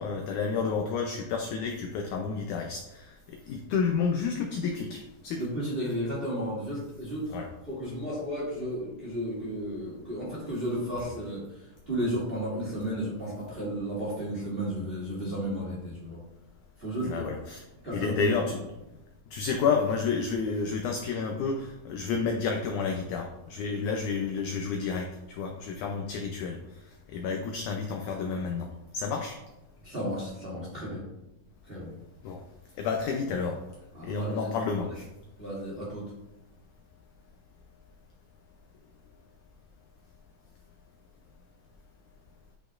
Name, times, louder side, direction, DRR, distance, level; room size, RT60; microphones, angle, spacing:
voice 1, 0.0-5.4 7.3-7.5 17.0-17.6 17.9-18.6 19.3-26.6 27.1-28.7 28.9-29.4 32.2-32.4 32.8-33.6 34.0-34.9, left 5 dB, 80° left, 2 dB, 1.8 m, -30 dB
voice 2, 5.4-16.2 16.8-17.3 17.8-18.4 29.8-31.1 31.6-31.9 33.9-34.6 35.4-36.1, equal, 20° right, -7 dB, 2.0 m, -33 dB
10.0 x 4.9 x 2.5 m, 0.94 s
omnidirectional pair, 4.2 m